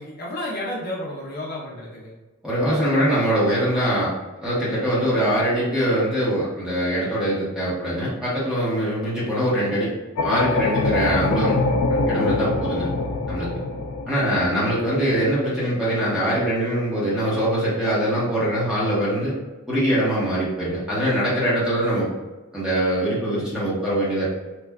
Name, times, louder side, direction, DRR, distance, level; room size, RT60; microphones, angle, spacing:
voice 1, 0.0-2.2, left 1 dB, 50° left, -5 dB, 0.7 m, -31 dB
voice 2, 2.4-4.1 4.4-9.9 10.2-11.6 12.1-12.9 13.3-13.5 14.1-19.3 19.7-22.1 22.5-24.3, equal, 5° right, -9 dB, 1.0 m, -22 dB
sound 1, 10.2-15.2, left 2 dB, 85° left, 0.4 m, -24 dB
3.2 x 2.3 x 2.3 m, 1.1 s
head